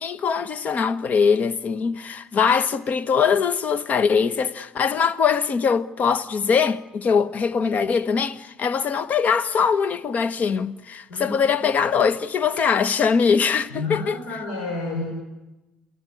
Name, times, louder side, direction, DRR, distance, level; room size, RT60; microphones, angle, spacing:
voice 1, 0.0-14.2, left 6 dB, 45° left, 1.3 m, -22 dB
voice 2, 11.1-11.6 13.7-15.1, left 3 dB, 75° left, 6.0 m, -30 dB
29.0 x 17.0 x 9.8 m
hypercardioid pair, 65°, 4 cm